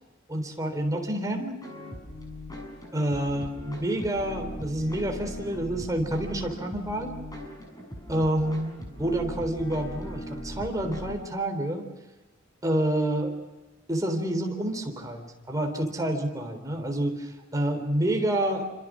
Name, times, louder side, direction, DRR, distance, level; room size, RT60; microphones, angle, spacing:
voice 1, 0.3-1.6 2.9-7.2 8.1-11.9 12.6-13.4 13.9-18.7, right 1 dB, 15° right, 3 dB, 3.7 m, -28 dB
sound 1, 1.6-11.1, equal, 20° left, 6.6 m, -39 dB
27.0 x 26.0 x 6.2 m, 1.1 s
head